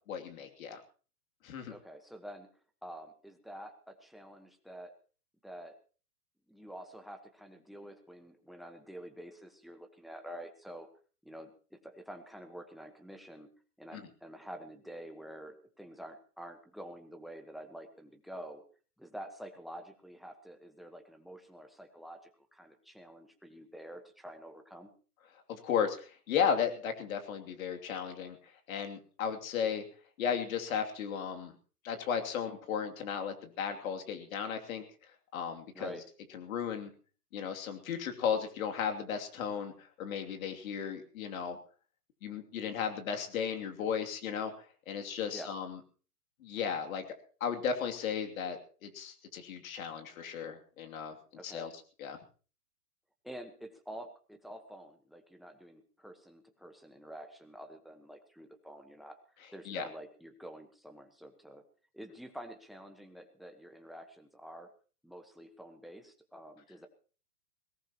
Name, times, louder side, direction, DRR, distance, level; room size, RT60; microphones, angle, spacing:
voice 1, 0.1-0.8 1.4-1.7 13.9-14.0 25.5-28.4 28.7-29.8 30.2-31.5 31.8-34.8 35.3-35.9 36.3-36.9 37.3-41.6 42.2-45.8 46.4-47.0 47.4-51.1 51.4-51.7 52.0-52.2 59.6-59.8, left 7 dB, 60° left, 5 dB, 3.0 m, -35 dB
voice 2, 1.7-2.5 2.8-4.9 5.4-5.7 6.5-10.9 11.2-13.5 13.8-18.6 19.0-24.9 29.2-29.4 35.7-36.0 45.3-45.5 51.4-51.7 53.2-59.2 59.5-61.6 61.9-64.7 65.0-66.9, equal, ahead, 7 dB, 1.3 m, -48 dB
21.5 x 18.0 x 3.0 m, 0.39 s
hypercardioid pair, 135°, 47 cm